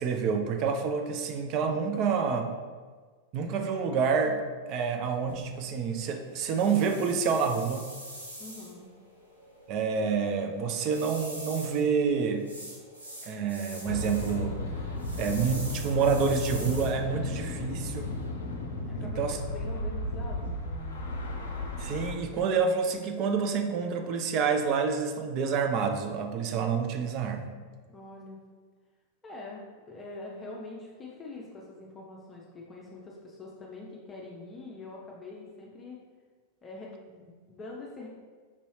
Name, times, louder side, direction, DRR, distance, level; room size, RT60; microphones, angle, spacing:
voice 1, 0.0-2.5 3.3-4.4 4.7-7.8 9.7-12.5 13.2-14.6 15.2-18.1 19.0-19.4 21.8-27.5, right 5 dB, 40° right, 4 dB, 0.5 m, -28 dB
sound 1, 5.3-18.3, right 1 dB, 85° right, 0.7 m, -46 dB
voice 2, 8.4-8.9 18.8-21.1 27.9-28.4 29.2-36.0 36.6-38.1, left 2 dB, 20° left, -3 dB, 0.6 m, -44 dB
sound 2, 13.9-22.1, left 2 dB, 70° left, 0.5 m, -34 dB
5.3 x 2.7 x 3.2 m, 1.5 s
figure-of-eight pair, 90°, 0 cm